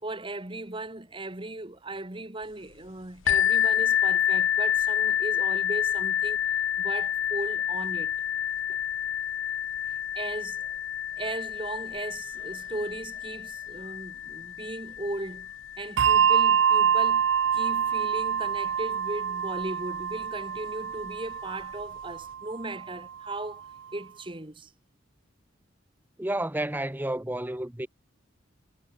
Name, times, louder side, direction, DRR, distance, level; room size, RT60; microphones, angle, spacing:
voice 1, 0.0-6.4 6.8-8.1 10.1-10.8 11.2-24.7, right 2 dB, 25° right, 1.7 m, -37 dB
sound 1, 3.3-18.8 19.6-19.7 20.2-20.3, left 10 dB, 75° left, 0.4 m, -29 dB
Bell, 16.0-22.8, right 8 dB, 65° right, 0.4 m, -25 dB
voice 2, 26.2-27.9, right 1 dB, 10° right, 0.9 m, -30 dB
head